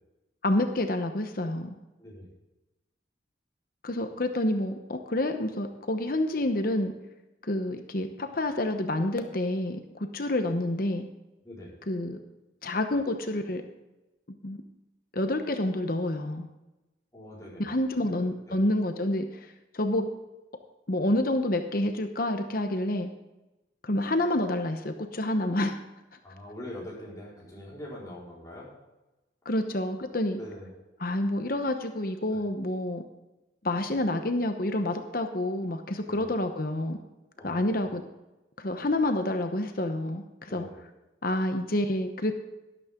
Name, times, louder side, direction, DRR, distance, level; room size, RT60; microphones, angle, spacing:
voice 1, 0.4-1.8 3.8-6.9 7.4-9.8 10.1-11.1 11.9-12.2 12.6-13.6 14.4-14.6 15.1-16.5 17.6-19.5 19.7-20.1 20.9-23.1 23.8-25.8 29.4-30.4 31.0-33.0 33.6-37.0 37.4-38.0 38.6-40.7 41.2-42.3, left 1 dB, 50° left, 6 dB, 1.0 m, -28 dB
voice 2, 17.1-17.7 18.0-18.1 18.5-18.6 26.2-28.7 30.4-30.7 36.0-36.3 37.4-37.9 40.5-40.8, left 1 dB, 15° left, -6 dB, 4.7 m, -43 dB
12.5 x 12.0 x 3.8 m, 1.0 s
head